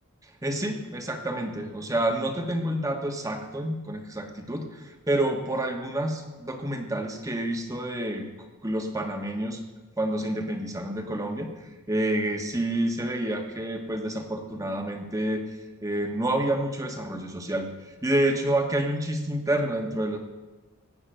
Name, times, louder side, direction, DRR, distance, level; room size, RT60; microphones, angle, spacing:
voice 1, 0.4-4.7 5.1-8.3 8.6-9.6 10.0-11.5 11.9-15.4 15.8-17.7 18.0-20.2, right 1 dB, 15° right, 4 dB, 1.4 m, -28 dB
17.0 x 6.1 x 7.7 m, 1.2 s
head